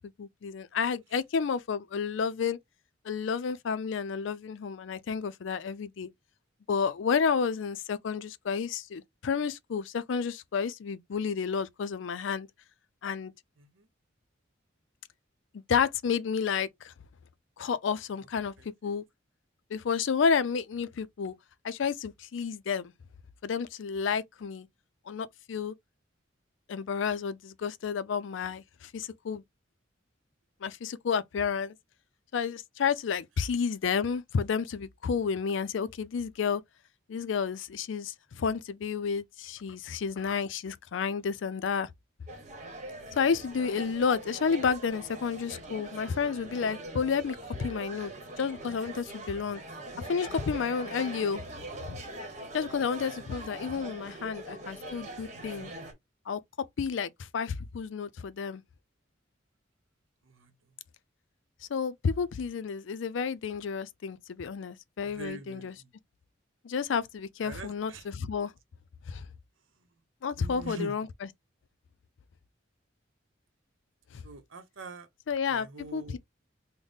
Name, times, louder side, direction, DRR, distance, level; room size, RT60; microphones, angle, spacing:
voice 1, 0.2-2.6 3.0-6.1 6.7-12.5 13.0-13.3 15.7-16.9 17.6-19.0 19.7-21.3 21.6-22.9 23.4-24.7 25.1-25.7 26.7-29.4 30.6-31.7 32.3-36.6 37.1-41.9 43.1-48.1 48.4-49.6 50.0-51.4 51.9-52.0 52.5-55.7 56.3-56.4 56.8-58.6 61.7-65.7 66.6-68.5 69.1-69.3 70.2-71.1 74.1-74.2 75.3-75.7 75.9-76.2, left 6 dB, 75° left, 0.4 m, -31 dB
voice 2, 13.6-13.9 18.6-18.9 60.2-60.7 65.0-65.9 67.4-68.1 69.7-69.9 70.4-70.9 74.2-75.1 75.5-76.2, right 3 dB, 85° right, 0.7 m, -44 dB
sound 1, 42.3-55.9, right 2 dB, 40° right, 1.0 m, -42 dB
3.9 x 2.1 x 3.4 m
head